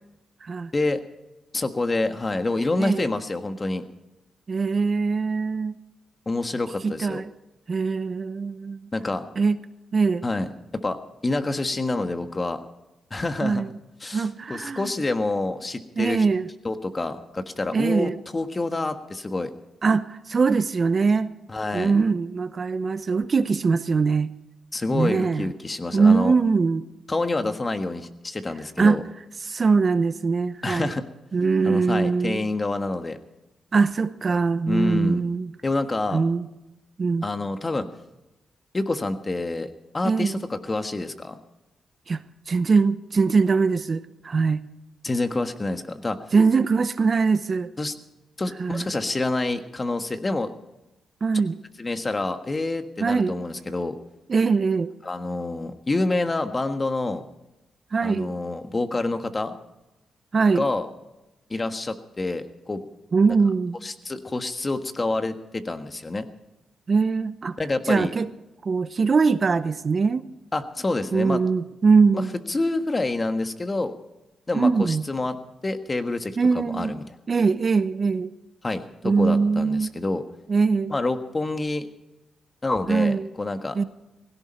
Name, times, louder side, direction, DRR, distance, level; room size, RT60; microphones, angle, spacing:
voice 1, 1.5-3.8 6.2-7.2 8.9-9.2 10.2-10.5 10.7-12.6 13.1-13.6 14.0-16.2 16.6-19.5 21.5-21.9 24.7-26.3 27.1-29.0 30.6-31.0 31.6-33.2 34.7-35.2 35.6-36.2 37.2-37.9 38.7-39.7 39.9-41.4 45.0-46.2 47.8-47.9 48.4-50.5 51.8-53.9 55.0-57.2 58.0-59.5 60.5-60.9 61.5-62.8 63.8-66.2 67.6-68.1 70.5-71.4 72.1-72.2 72.5-73.9 74.5-75.4 75.6-77.0 78.6-80.2 80.9-81.9 82.6-83.8, left 2 dB, 30° left, 8 dB, 1.5 m, -27 dB
voice 2, 4.5-5.7 6.8-7.2 7.7-8.9 9.4-9.6 9.9-10.2 13.4-13.7 14.1-14.9 16.0-16.5 17.7-18.2 19.8-21.3 21.7-24.3 24.9-25.5 25.9-26.8 28.8-29.0 29.4-30.9 31.3-32.4 33.7-35.5 36.1-36.5 37.0-37.3 40.0-40.4 42.1-44.6 46.3-47.7 48.6-48.9 51.2-51.6 53.0-53.4 54.3-54.9 57.9-58.3 60.3-60.7 63.1-63.8 66.9-67.6 67.9-68.3 68.6-70.2 71.1-72.3 74.5-75.0 76.4-76.9 77.3-78.3 79.0-79.9 80.5-80.9 82.9-83.3 83.7-83.8, right 4 dB, 45° right, 13 dB, 0.8 m, -22 dB
17.0 x 17.0 x 4.4 m, 0.98 s
cardioid pair, 65°, 0 cm